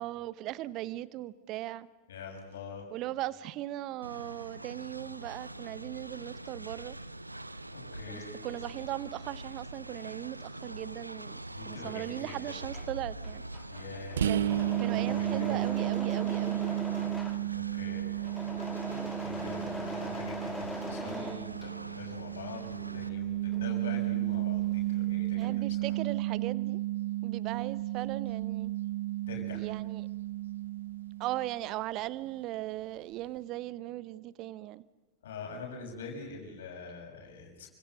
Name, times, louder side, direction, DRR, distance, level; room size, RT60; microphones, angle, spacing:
voice 1, 0.0-1.9 2.9-7.0 8.1-13.4 14.3-14.4 14.7-16.9 21.0-21.6 25.4-26.8 27.2-28.7 29.5-30.1 31.2-34.8, right 15 dB, 40° right, 18 dB, 0.9 m, -38 dB
voice 2, 2.1-2.9 7.7-8.3 11.6-12.5 13.7-14.3 15.0-15.6 17.5-18.0 19.2-25.9 29.3-29.6 35.2-37.7, left 5 dB, 60° left, 1 dB, 6.3 m, -44 dB
Train, 4.0-23.1, right 1 dB, 85° right, 1.0 m, -44 dB
Engine / Mechanisms, 12.5-22.1 22.4-24.8 25.0-25.7, left 1 dB, 5° left, 1.7 m, -41 dB
sound 1, 14.2-31.7, right 14 dB, 65° right, 0.8 m, -33 dB
29.5 x 25.5 x 6.5 m, 1.3 s
figure-of-eight pair, 90°, 0 cm